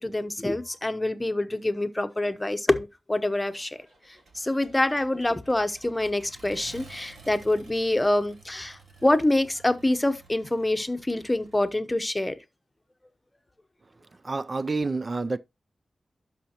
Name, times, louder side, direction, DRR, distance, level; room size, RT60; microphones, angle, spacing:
voice 1, 0.0-12.3, left 1 dB, 20° left, 0.9 m, -26 dB
Accelerating revving vroom, 3.5-11.7, right 3 dB, 85° right, 3.1 m, -52 dB
voice 2, 14.2-15.4, right 3 dB, 40° right, 0.3 m, -28 dB
12.0 x 5.7 x 2.9 m
wide cardioid pair, 80°, 0 cm